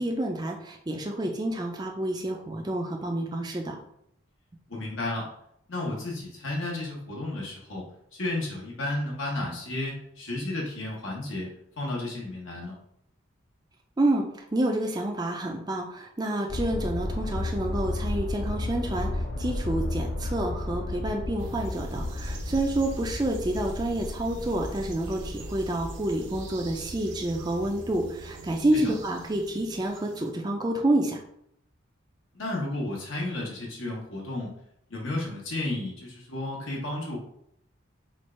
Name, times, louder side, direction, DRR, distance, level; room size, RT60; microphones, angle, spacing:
voice 1, 0.0-3.8 14.0-31.2, right 1 dB, 20° right, 1 dB, 0.4 m, -28 dB
voice 2, 4.7-5.3 5.7-7.8 8.1-11.5 11.8-12.8 28.7-28.8 32.3-34.5 34.9-37.2, left 2 dB, 75° left, -2 dB, 1.1 m, -32 dB
sound 1, 16.5-29.2 29.7-29.8, left 1 dB, 55° left, 0.7 m, -34 dB
sound 2, 21.4-30.3, right 3 dB, 65° right, 0.7 m, -45 dB
4.5 x 2.4 x 4.3 m, 0.73 s
head